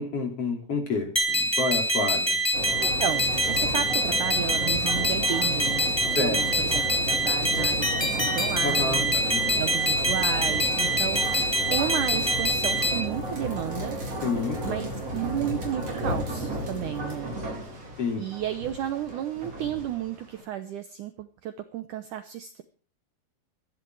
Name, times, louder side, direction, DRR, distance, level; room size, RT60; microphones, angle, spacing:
voice 1, 0.0-2.4 6.2-6.4 8.6-9.7 14.2-14.9 18.0-18.2, left 3 dB, 35° left, 3 dB, 3.9 m, -29 dB
sound 1, 1.1-13.0, equal, 5° left, 2.4 m, -25 dB
sound 2, 2.5-20.4, right 1 dB, 35° right, 5.6 m, -33 dB
voice 2, 2.8-9.1 9.6-14.0 14.6-14.9 15.1-17.3 18.2-22.6, right 11 dB, 85° right, 10 dB, 1.8 m, -33 dB
23.5 x 10.5 x 4.8 m, 0.41 s
omnidirectional pair, 4.9 m